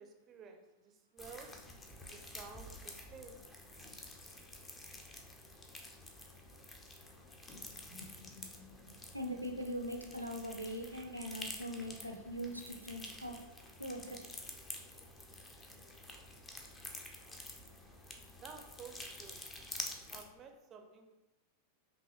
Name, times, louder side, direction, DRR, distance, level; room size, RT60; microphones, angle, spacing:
voice 1, 0.0-1.6 2.1-3.5 18.3-19.4 20.1-21.2, right 5 dB, 30° right, 6 dB, 0.5 m, -53 dB
sound 1, 1.2-20.2, left 2 dB, 15° left, 0.6 m, -49 dB
voice 2, 7.8-13.4 13.8-14.2, equal, 90° right, 3 dB, 0.5 m, -42 dB
5.3 x 2.8 x 3.0 m, 1.0 s
figure-of-eight pair, 90°, 0 cm